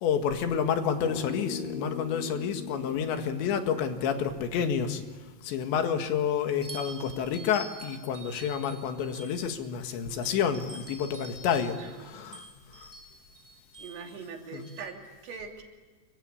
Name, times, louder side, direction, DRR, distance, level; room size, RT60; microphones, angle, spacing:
voice 1, 0.0-5.0 5.4-12.4 12.8-12.9 14.5-14.7, left 7 dB, 85° left, 6 dB, 4.1 m, -29 dB
sound 1, 1.0-5.5, left 6 dB, 55° left, 2.0 m, -40 dB
sound 2, 6.6-9.7 10.2-14.8, right 1 dB, 5° right, 5.7 m, -47 dB
voice 2, 13.8-15.6, right 5 dB, 85° right, 2 dB, 5.2 m, -42 dB
28.5 x 23.5 x 8.7 m, 1.2 s
omnidirectional pair, 5.0 m